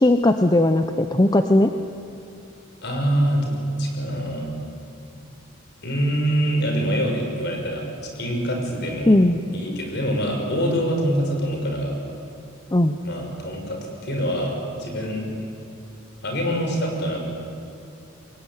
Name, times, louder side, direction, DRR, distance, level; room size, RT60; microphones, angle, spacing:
voice 1, 0.0-1.7 9.1-9.4 12.7-13.0, left 1 dB, 20° left, 7 dB, 0.7 m, -17 dB
voice 2, 2.8-4.5 5.8-9.1 9.5-12.0 13.0-14.5 14.8-15.3 16.2-17.3, equal, 55° left, 2 dB, 5.9 m, -25 dB
25.5 x 21.5 x 9.9 m, 2.6 s
head